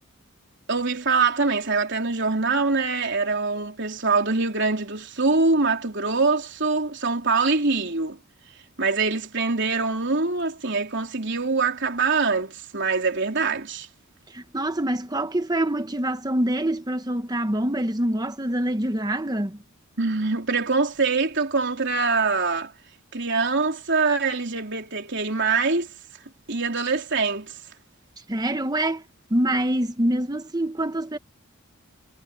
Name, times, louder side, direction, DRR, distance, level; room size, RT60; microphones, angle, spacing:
voice 1, 0.7-8.2 8.8-13.9 20.0-22.7 23.1-25.9 26.5-27.5, right 4 dB, 55° right, 3.8 m, -24 dB
voice 2, 14.3-19.6 28.3-29.0 29.3-31.2, right 1 dB, 20° right, 1.0 m, -25 dB
head